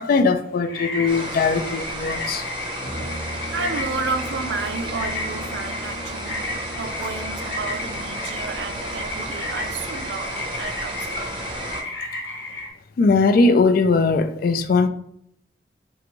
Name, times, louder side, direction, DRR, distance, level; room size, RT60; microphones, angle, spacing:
voice 1, 0.0-2.4 11.2-11.3 13.0-14.9, left 3 dB, 50° left, 10 dB, 0.3 m, -19 dB
sound 1, 0.7-12.7, left 2 dB, 75° left, 1.0 m, -33 dB
sound 2, 1.1-11.8, right 1 dB, 25° right, 0.6 m, -33 dB
Brass instrument, 2.8-10.3, equal, 10° left, 0.9 m, -39 dB
voice 2, 3.5-6.5 6.8-11.4, right 4 dB, 65° right, 8 dB, 0.4 m, -31 dB
4.5 x 2.5 x 3.0 m, 0.72 s
head